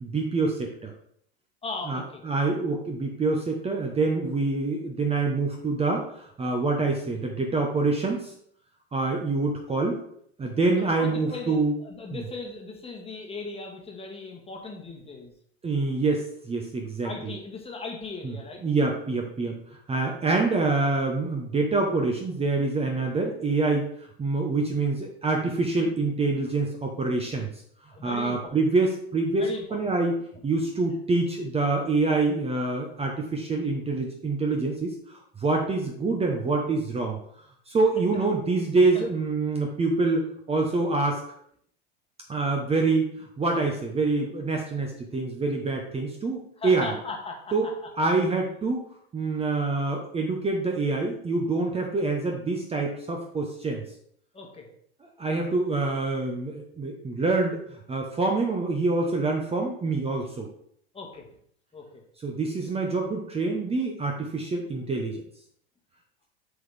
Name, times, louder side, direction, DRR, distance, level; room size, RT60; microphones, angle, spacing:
voice 1, 0.0-0.9 1.9-8.3 8.9-10.0 10.4-11.7 12.1-12.2 15.6-17.3 18.2-18.3 18.6-23.9 24.2-27.5 28.0-30.2 30.4-35.0 35.4-37.2 37.7-41.2 42.3-46.9 47.5-47.7 48.0-48.8 49.1-53.8 55.2-57.6 57.9-60.5 62.2-65.2, right 3 dB, 20° right, 1 dB, 0.9 m, -26 dB
voice 2, 1.6-2.2 11.0-15.3 17.0-18.6 27.9-28.5 29.3-29.8 38.1-38.3 38.9-39.1 46.6-47.4 47.8-47.9 54.3-54.6 55.5-55.6 60.9-61.3 61.7-62.0, left 3 dB, 20° left, 1 dB, 1.5 m, -38 dB
7.8 x 3.9 x 3.4 m, 0.67 s
hypercardioid pair, 85°, 32 cm